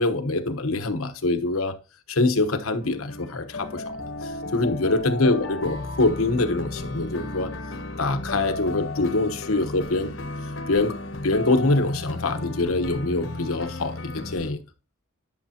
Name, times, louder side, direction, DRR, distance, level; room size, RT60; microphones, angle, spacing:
voice 1, 0.0-1.8 2.1-3.8 4.2-7.5 8.0-10.1 10.7-14.6, left 2 dB, 80° left, 1.1 m, -24 dB
sound 1, 2.8-14.5, left 2 dB, 60° left, 1.0 m, -34 dB
11.0 x 6.7 x 2.9 m
head